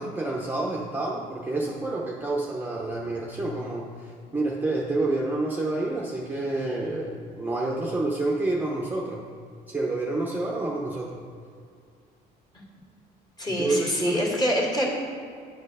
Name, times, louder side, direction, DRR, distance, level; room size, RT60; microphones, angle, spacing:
voice 1, 0.0-9.2 9.7-11.2 13.5-14.3, right 2 dB, 10° right, -3 dB, 0.7 m, -28 dB
voice 2, 13.4-14.9, equal, 25° left, -3 dB, 2.1 m, -25 dB
9.6 x 4.4 x 5.4 m, 2.4 s
cardioid pair, 110°, 17 cm